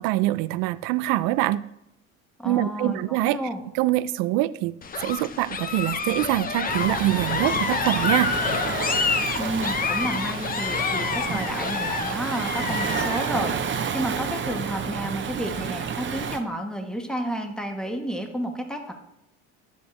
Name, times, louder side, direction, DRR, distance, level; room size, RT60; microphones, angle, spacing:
voice 1, 0.0-1.6 2.4-3.4 3.7-4.7 5.0-8.3, right 16 dB, 70° right, 0.5 m, -24 dB
voice 2, 2.4-3.6 9.4-18.9, equal, ahead, 1.3 m, -31 dB
sound 1, 4.8-13.4, left 5 dB, 25° left, 0.7 m, -28 dB
Waves surf, 6.6-16.4, right 7 dB, 35° right, 0.8 m, -30 dB
9.7 x 7.2 x 3.2 m
supercardioid pair, 95°, 35 cm